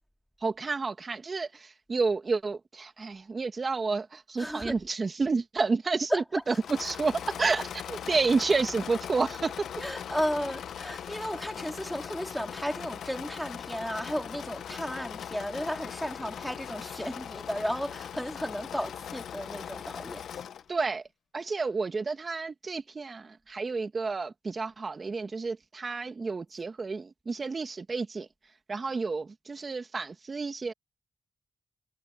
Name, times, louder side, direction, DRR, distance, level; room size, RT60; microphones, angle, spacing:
voice 1, 0.4-9.8 20.7-21.1 21.3-28.3 28.7-30.7, right 4 dB, 45° right, 2.0 m, -30 dB
voice 2, 4.4-4.8 6.1-6.9 8.1-8.2 9.8-20.4, equal, 5° left, 3.9 m, -34 dB
Engine / Mechanisms, 6.5-20.7, left 8 dB, 80° left, 1.1 m, -40 dB
cardioid pair, 55°, 0 cm